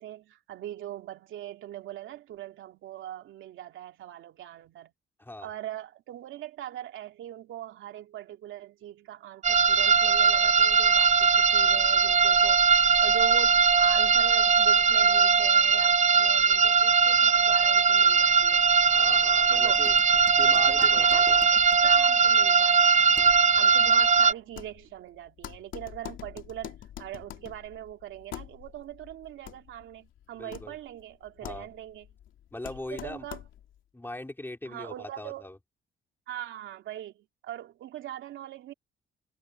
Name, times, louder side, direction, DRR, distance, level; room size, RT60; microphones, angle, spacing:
voice 1, 0.0-4.9 5.4-18.7 19.5-19.9 20.4-23.1 23.6-32.1 32.9-33.4 34.7-35.5 36.3-38.7, right 12 dB, 85° right, 3.0 m, -41 dB
voice 2, 5.2-5.5 18.9-20.0 20.3-21.5 23.5-23.8 30.4-30.8 31.4-31.7 32.5-33.3 33.9-35.6, left 1 dB, 10° left, 4.0 m, -40 dB
sound 1, 9.4-24.3, right 5 dB, 35° right, 0.6 m, -20 dB
sound 2, 19.7-33.8, left 11 dB, 75° left, 3.2 m, -46 dB
cardioid pair, 90°, 20 cm